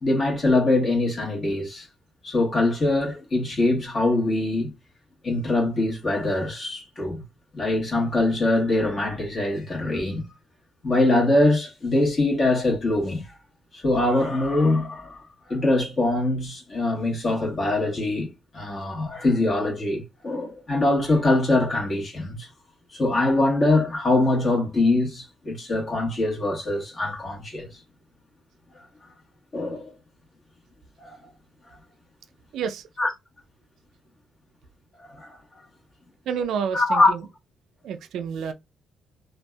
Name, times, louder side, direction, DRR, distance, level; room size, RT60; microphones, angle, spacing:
voice 1, 0.0-1.9 2.2-4.7 5.2-7.2 7.5-10.3 10.8-13.3 13.7-15.2 15.5-22.5 22.9-27.7 29.5-29.9 31.0-31.2 33.0-33.1 35.1-35.4 36.7-37.1, left 2 dB, 40° left, 1.2 m, -23 dB
voice 2, 32.5-32.9 36.3-37.3 37.8-38.5, right 7 dB, 75° right, 0.4 m, -29 dB
2.6 x 2.2 x 2.2 m
cardioid pair, 90°, 0 cm